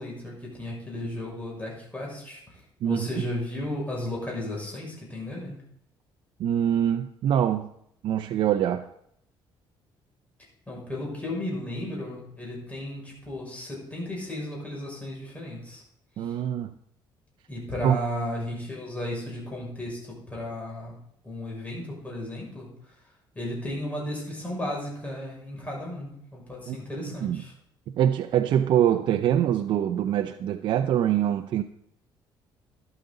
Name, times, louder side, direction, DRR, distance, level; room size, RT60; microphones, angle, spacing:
voice 1, 0.0-5.6 10.7-15.8 16.2-16.3 17.5-20.9 21.2-22.7 23.3-27.5, left 1 dB, 15° left, -3 dB, 6.2 m, -34 dB
voice 2, 6.4-7.7 8.0-8.8 16.2-16.7 17.8-18.0 26.7-27.4 28.0-31.6, right 10 dB, 60° right, 7 dB, 0.6 m, -24 dB
12.5 x 12.0 x 3.9 m, 0.71 s
cardioid pair, 135°, 9 cm